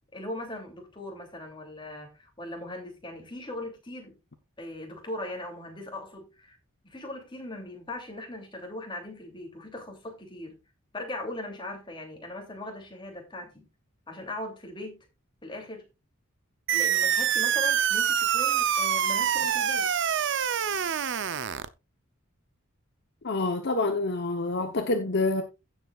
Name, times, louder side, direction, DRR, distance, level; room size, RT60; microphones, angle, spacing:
voice 1, 0.1-4.2 4.6-6.6 6.8-10.6 10.9-13.7 14.1-15.1 15.4-15.9 16.7-19.9, left 1 dB, 20° left, 2.8 m, -39 dB
sound 1, 16.7-21.7, right 9 dB, 55° right, 0.6 m, -25 dB
voice 2, 23.2-25.4, left 2 dB, 50° left, 1.0 m, -27 dB
16.0 x 7.4 x 2.4 m
head